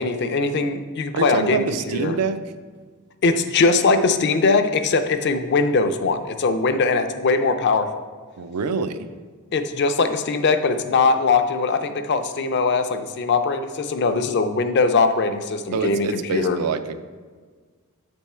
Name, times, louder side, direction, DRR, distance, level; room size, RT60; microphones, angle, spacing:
voice 1, 0.0-2.1 3.2-8.0 9.5-16.6, left 4 dB, 50° left, 8 dB, 0.4 m, -21 dB
voice 2, 1.1-2.4 8.4-9.1 15.7-17.0, right 4 dB, 90° right, 10 dB, 0.4 m, -25 dB
7.7 x 3.5 x 4.2 m, 1.5 s
head